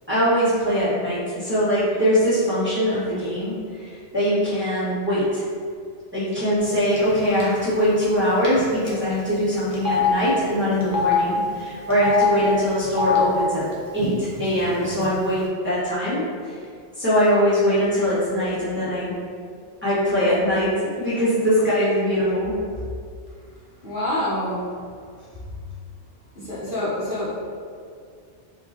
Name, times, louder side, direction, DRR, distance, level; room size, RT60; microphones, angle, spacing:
voice 1, 0.1-5.4 6.1-13.7 13.9-16.6 17.0-19.1 19.8-22.6, equal, 10° right, -13 dB, 1.5 m, -22 dB
Telephone, 7.0-7.1 7.4-7.6 8.4-8.6 8.9-9.0 9.7-10.1 10.8-11.1 11.9-12.2 12.8-13.2 14.0-14.1 14.4-15.1, left 5 dB, 20° left, 0.7 m, -24 dB
voice 2, 23.8-24.6 26.4-27.3, left 1 dB, 50° left, -11 dB, 1.2 m, -26 dB
5.0 x 2.9 x 2.9 m, 2.1 s
omnidirectional pair, 1.2 m